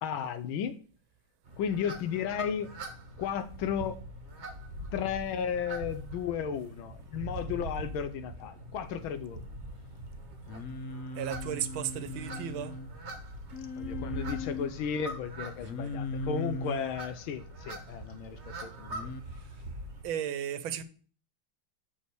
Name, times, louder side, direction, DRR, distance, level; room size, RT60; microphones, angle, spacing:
voice 1, 0.0-0.8 1.6-2.7 3.2-4.0 4.9-9.4 13.8-19.1, left 7 dB, 80° left, 1.5 m, -34 dB
sound 1, 1.4-20.0, right 1 dB, 35° right, 1.5 m, -43 dB
Singing, 10.5-12.9 13.5-14.7 15.6-16.9 18.9-19.2, left 3 dB, 65° left, 0.8 m, -38 dB
voice 2, 11.2-12.7 20.0-20.8, right 9 dB, 75° right, 1.5 m, -34 dB
6.6 x 5.5 x 4.5 m
omnidirectional pair, 2.2 m